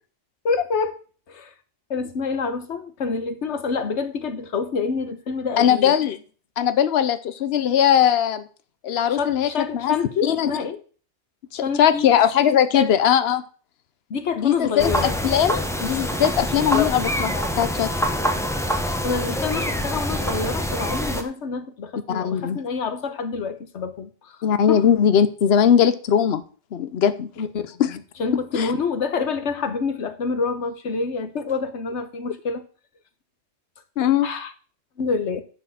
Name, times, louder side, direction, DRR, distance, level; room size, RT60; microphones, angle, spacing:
voice 1, 0.4-0.9 1.3-1.5 1.9-5.9 9.1-10.8 11.5-12.1 12.7-12.9 14.1-15.1 16.6-16.9 19.0-24.4 24.7-24.8 27.4-32.6 34.2-34.5 35.0-35.4, left 5 dB, 85° left, 1.4 m, -27 dB
voice 2, 5.6-6.2 6.6-8.5 8.8-9.9 10.2-10.5 11.5-13.4 14.4-18.4 22.1-22.6 24.4-26.4 26.7-27.3 27.8-27.9 28.5-28.7 34.0-34.3, left 9 dB, 65° left, 1.0 m, -20 dB
sound 1, 14.8-21.2, equal, 5° left, 1.0 m, -25 dB
11.0 x 4.5 x 7.4 m
omnidirectional pair, 1.2 m